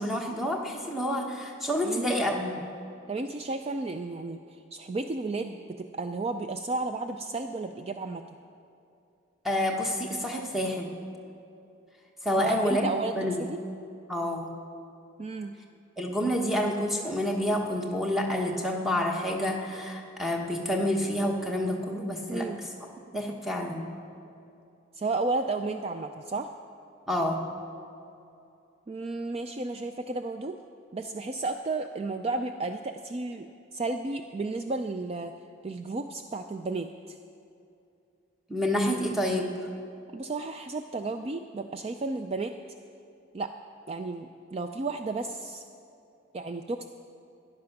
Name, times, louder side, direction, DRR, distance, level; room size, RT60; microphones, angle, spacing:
voice 1, 0.0-2.5 9.4-11.0 12.2-13.4 14.1-14.5 16.0-22.5 23.1-23.9 27.1-27.4 38.5-39.5, left 1 dB, ahead, 0 dB, 1.1 m, -28 dB
voice 2, 1.8-2.2 3.1-8.2 12.4-13.6 15.2-15.5 22.3-22.6 24.9-26.5 28.9-30.6 30.9-35.3 35.6-37.2 40.1-42.5 43.3-43.5 43.9-45.6 46.3-46.9, right 3 dB, 30° right, 7 dB, 0.3 m, -33 dB
13.5 x 10.5 x 5.9 m, 2.6 s
head